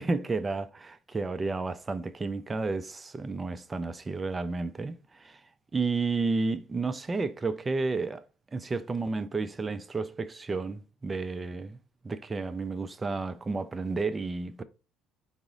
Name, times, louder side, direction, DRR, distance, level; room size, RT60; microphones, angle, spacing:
voice 1, 0.0-5.4 5.7-8.2 8.5-11.8 12.0-14.6, right 3 dB, 20° right, 0.3 m, -31 dB
3.8 x 2.0 x 3.6 m
cardioid pair, 100°, 0 cm